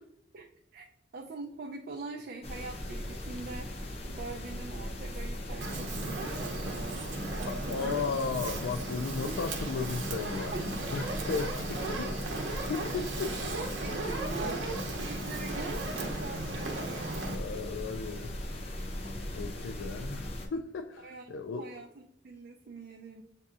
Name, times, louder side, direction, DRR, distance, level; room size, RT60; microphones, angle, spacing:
voice 1, 0.3-0.9 1.1-3.8 4.1-7.9 10.5-10.7 13.8-14.6 15.0-17.4 21.0-21.3 21.5-23.2, right 3 dB, 55° right, 2 dB, 0.4 m, -43 dB
sound 1, 2.4-20.5, left 1 dB, 35° left, 0.7 m, -39 dB
Fire, 5.6-17.4, right 2 dB, 80° right, 0.8 m, -36 dB
voice 2, 7.5-10.5 10.9-13.6 17.3-18.4 19.3-21.8, left 5 dB, 85° left, 5 dB, 0.3 m, -36 dB
7.6 x 2.7 x 2.4 m, 0.75 s
head